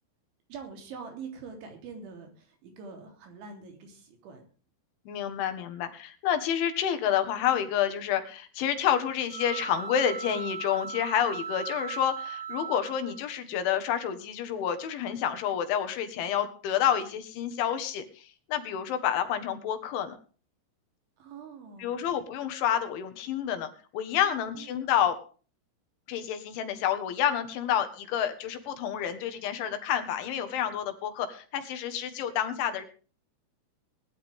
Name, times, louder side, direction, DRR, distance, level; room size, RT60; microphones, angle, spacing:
voice 1, 0.5-4.4 21.2-22.0 24.2-24.9, right 5 dB, 70° right, 4 dB, 5.7 m, -45 dB
voice 2, 5.1-20.2 21.8-25.2 26.1-32.8, left 9 dB, 75° left, 8 dB, 3.9 m, -29 dB
sound 1, 9.3-13.4, right 6 dB, 90° right, 4.5 m, -38 dB
20.0 x 11.5 x 3.6 m, 0.39 s
omnidirectional pair, 5.6 m